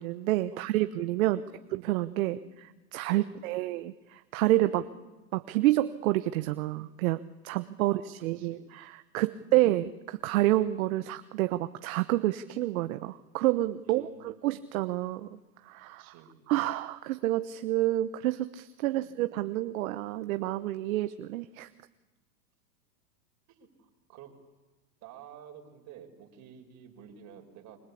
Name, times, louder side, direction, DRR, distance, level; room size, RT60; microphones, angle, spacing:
voice 1, 0.0-1.4 1.7-2.4 2.9-4.8 5.3-15.4 15.6-16.1 16.5-21.7, right 16 dB, 55° right, 11 dB, 1.1 m, -29 dB
voice 2, 1.2-1.6 2.2-2.6 3.2-3.6 4.7-5.1 7.8-8.7 9.3-9.7 13.8-14.6 16.0-16.4 19.0-19.2 23.5-24.3 25.0-27.8, right 8 dB, 35° right, 3 dB, 5.6 m, -52 dB
28.0 x 24.5 x 8.5 m, 1.1 s
hypercardioid pair, 135°, 49 cm